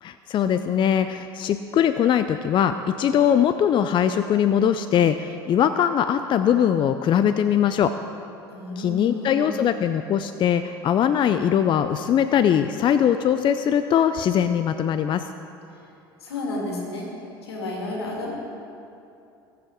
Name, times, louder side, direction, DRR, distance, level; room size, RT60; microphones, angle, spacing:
voice 1, 0.0-7.9 8.8-15.3, left 9 dB, 40° left, 10 dB, 0.5 m, -21 dB
voice 2, 8.5-9.6 16.2-17.1 17.4-18.3, left 2 dB, 85° left, -1 dB, 2.4 m, -31 dB
20.0 x 7.3 x 4.5 m, 2.7 s
hypercardioid pair, 70°, 13 cm